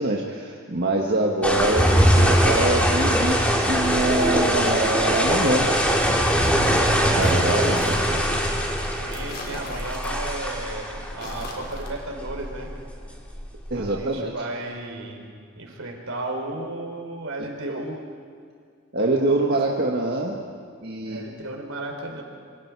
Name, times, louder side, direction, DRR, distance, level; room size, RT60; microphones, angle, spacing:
voice 1, 0.0-5.7 7.2-8.0 13.7-14.3 17.7-17.8 18.9-20.4 20.8-21.2, right 2 dB, 50° right, -1 dB, 1.6 m, -24 dB
sound 1, 1.4-14.0, equal, 5° left, 2.7 m, -22 dB
sound 2, 7.1-8.1 9.1-10.4 11.1-12.0, left 2 dB, 45° left, 4.3 m, -39 dB
voice 2, 8.9-12.7 13.7-15.2 15.6-18.0 21.1-22.2, right 2 dB, 70° right, 2 dB, 4.2 m, -34 dB
27.0 x 26.0 x 4.8 m, 2.2 s
head